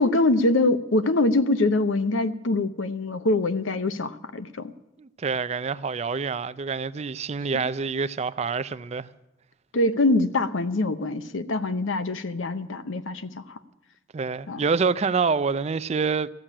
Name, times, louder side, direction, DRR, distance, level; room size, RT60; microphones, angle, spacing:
voice 1, 0.0-4.7 7.5-7.6 9.7-13.6 14.5-14.6, left 2 dB, 85° left, 0.8 m, -24 dB
voice 2, 5.0-9.1 14.1-16.3, right 5 dB, 35° right, 0.4 m, -26 dB
14.5 x 7.5 x 9.9 m
head